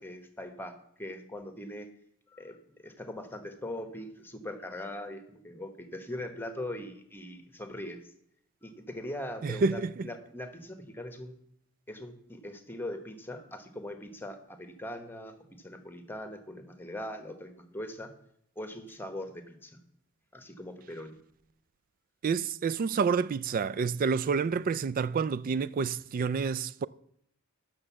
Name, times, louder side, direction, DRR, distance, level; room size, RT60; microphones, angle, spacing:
voice 1, 0.0-1.9 2.3-8.1 8.6-11.4 11.9-18.1 18.6-19.8 20.3-21.2, left 1 dB, 10° left, 1.1 m, -41 dB
voice 2, 9.4-10.0 22.2-26.9, right 5 dB, 40° right, 0.3 m, -29 dB
8.8 x 6.4 x 7.2 m
head